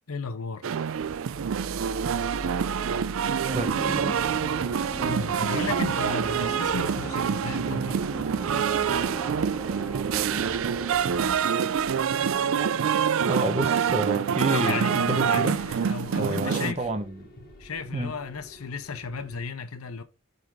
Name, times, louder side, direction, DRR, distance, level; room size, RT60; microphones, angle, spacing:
voice 1, 0.1-0.7 4.8-8.1 14.5-16.9 17.6-20.0, left 4 dB, 85° left, 0.9 m, -34 dB
sound 1, 0.6-16.7, right 7 dB, 65° right, 0.4 m, -26 dB
sound 2, 1.3-19.4, equal, 45° left, 1.9 m, -47 dB
sound 3, 3.5-11.4, right 1 dB, 5° right, 1.6 m, -38 dB
voice 2, 3.5-4.3 13.2-15.6 16.2-17.3 17.9-18.1, right 2 dB, 30° right, 1.0 m, -29 dB
7.6 x 3.9 x 3.6 m
head